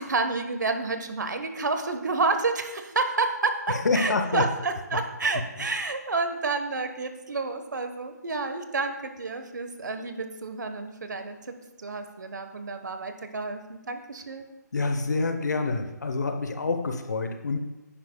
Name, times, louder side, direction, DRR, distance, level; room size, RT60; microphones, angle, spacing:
voice 1, 0.0-14.5, right 3 dB, 75° right, 7 dB, 1.1 m, -30 dB
voice 2, 3.7-4.4 14.7-17.6, left 3 dB, 70° left, 6 dB, 0.9 m, -27 dB
10.0 x 9.9 x 2.3 m, 1.0 s
hypercardioid pair, 165°, 10 cm